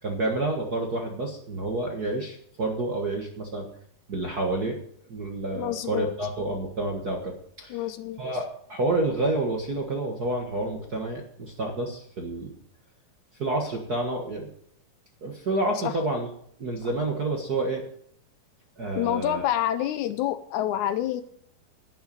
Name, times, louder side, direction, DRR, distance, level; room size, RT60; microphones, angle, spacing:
voice 1, 0.0-3.7 4.1-4.8 5.1-7.9 8.2-12.5 13.4-14.5 15.2-16.3 16.6-17.8 18.8-19.4, right 2 dB, 45° right, 2 dB, 1.3 m, -29 dB
voice 2, 5.5-6.1 7.7-8.2 15.8-15.9 19.0-21.2, left 12 dB, 75° left, 11 dB, 1.9 m, -27 dB
11.5 x 10.5 x 5.4 m, 0.65 s
omnidirectional pair, 3.7 m